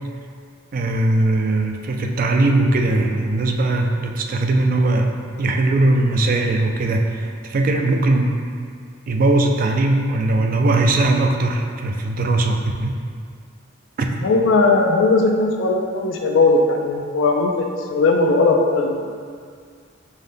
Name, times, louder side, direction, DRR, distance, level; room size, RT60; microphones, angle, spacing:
voice 1, 0.7-5.1 5.4-8.3 9.1-13.0 14.0-14.1, right 2 dB, 45° right, 3 dB, 0.3 m, -19 dB
voice 2, 14.2-19.2, left 3 dB, 85° left, 2 dB, 0.4 m, -18 dB
5.4 x 2.1 x 3.3 m, 2.1 s
head